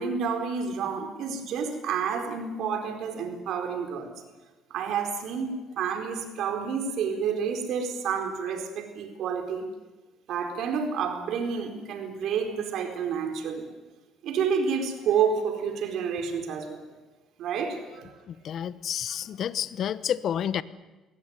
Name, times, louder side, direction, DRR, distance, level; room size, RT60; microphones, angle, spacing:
voice 1, 0.0-4.1 4.7-9.6 10.3-13.7 14.2-16.8 17.4-18.1 19.1-19.2, right 6 dB, 70° right, 6 dB, 4.3 m, -29 dB
voice 2, 18.3-20.6, left 9 dB, 60° left, 16 dB, 0.9 m, -30 dB
22.5 x 17.5 x 9.5 m, 1.2 s
cardioid pair, 100°, 0 cm